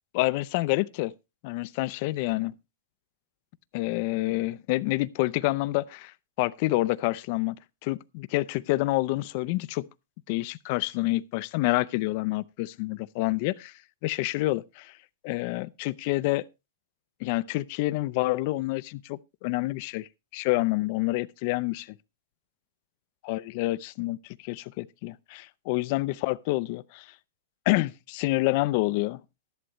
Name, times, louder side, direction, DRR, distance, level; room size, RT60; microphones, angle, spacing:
voice 1, 0.1-1.1 1.4-2.5 3.7-7.6 7.8-9.9 10.3-13.7 14.0-14.9 15.2-16.4 17.2-20.1 20.3-21.9 23.2-24.2 24.4-27.1 27.7-29.2, left 20 dB, 45° left, 0.5 m, -28 dB
12.5 x 11.0 x 3.1 m
hypercardioid pair, 145°, 0 cm